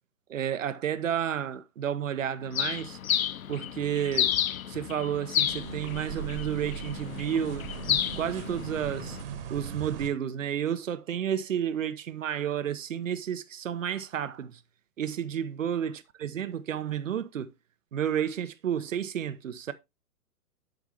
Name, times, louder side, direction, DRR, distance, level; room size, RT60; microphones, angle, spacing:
voice 1, 0.3-3.0 3.5-4.3 4.6-9.2 9.5-14.6 15.0-17.5 17.9-19.7, right 9 dB, 55° right, 1.0 m, -31 dB
Bird, 2.5-9.2, left 10 dB, 60° left, 0.6 m, -31 dB
sound 1, 5.5-10.1, right 7 dB, 35° right, 1.5 m, -39 dB
12.0 x 4.7 x 3.3 m
figure-of-eight pair, 120°, 47 cm